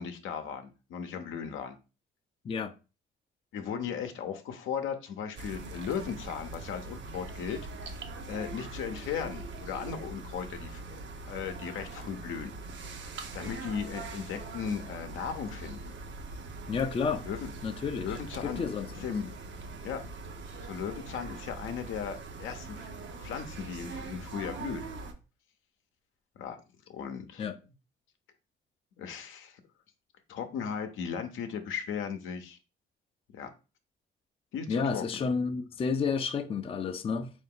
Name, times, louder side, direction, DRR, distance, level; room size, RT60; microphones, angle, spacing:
voice 1, 0.0-1.7 3.5-7.6 8.3-11.0 11.3-12.5 13.3-15.9 17.3-17.5 18.0-18.7 19.0-19.3 19.8-20.0 20.6-22.9 23.2-24.9 26.4-26.6 26.9-27.5 29.0-29.6 30.3-32.6 33.3-33.5 34.5-35.0, left 7 dB, 80° left, 0.7 m, -36 dB
sound 1, 5.4-25.1, right 3 dB, 65° right, 0.7 m, -42 dB
voice 2, 16.7-17.2 17.6-18.2 18.4-19.1 27.4-27.5 34.7-37.3, left 5 dB, 30° left, 0.4 m, -31 dB
3.8 x 2.6 x 3.6 m
cardioid pair, 90°, 20 cm